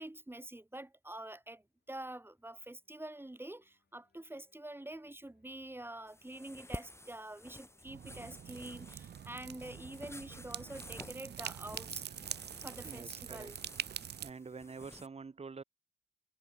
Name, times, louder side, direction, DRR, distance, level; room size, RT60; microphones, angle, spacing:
voice 1, 0.0-12.0 12.6-13.6, right 1 dB, 10° right, 1.1 m, -46 dB
sound 1, 1.2-15.0, left 6 dB, 60° left, 6.7 m, -75 dB
sound 2, 6.1-15.1, left 1 dB, 15° left, 5.1 m, -52 dB
sound 3, 7.9-14.3, right 9 dB, 65° right, 0.5 m, -44 dB
voice 2, 12.8-13.6 14.2-15.6, right 4 dB, 35° right, 0.9 m, -47 dB
supercardioid pair, 40°, 19 cm